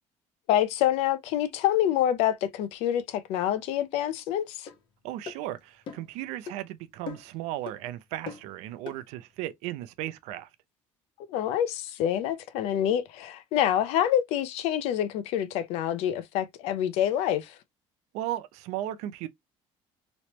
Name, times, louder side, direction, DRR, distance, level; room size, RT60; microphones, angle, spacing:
voice 1, 0.5-4.7 11.3-17.5, left 11 dB, 75° left, 0.6 m, -26 dB
sound 1, 4.7-4.8 5.3-5.4 5.9-6.1 6.5-6.6 7.1-7.4 7.7-7.8 8.3-8.5 8.9-9.0, left 5 dB, 45° left, 0.8 m, -39 dB
voice 2, 5.0-10.5 18.1-19.3, right 13 dB, 85° right, 0.5 m, -36 dB
3.1 x 3.0 x 2.9 m
cardioid pair, 170°, 11 cm